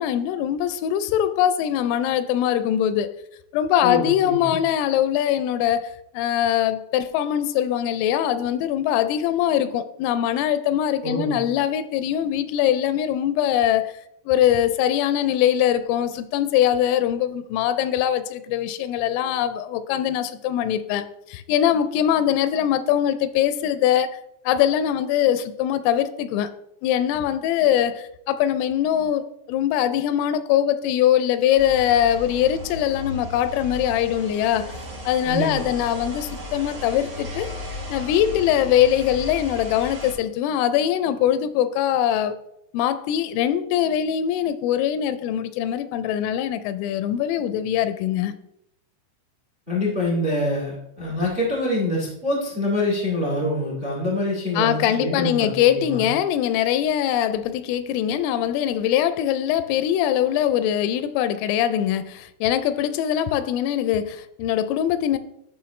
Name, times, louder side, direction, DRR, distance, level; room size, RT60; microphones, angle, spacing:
voice 1, 0.0-3.1 3.5-14.0 14.3-24.2 24.5-26.5 26.8-29.2 29.5-34.8 35.1-37.5 37.9-42.4 42.7-48.4 54.6-65.2, left 10 dB, 85° left, 3.1 m, -22 dB
voice 2, 3.8-4.6 11.0-11.4 35.2-35.7 49.7-56.1, left 1 dB, 35° right, 0.8 m, -25 dB
sound 1, 31.6-40.1, left 1 dB, 85° right, 0.6 m, -36 dB
11.0 x 6.1 x 3.1 m
omnidirectional pair, 5.8 m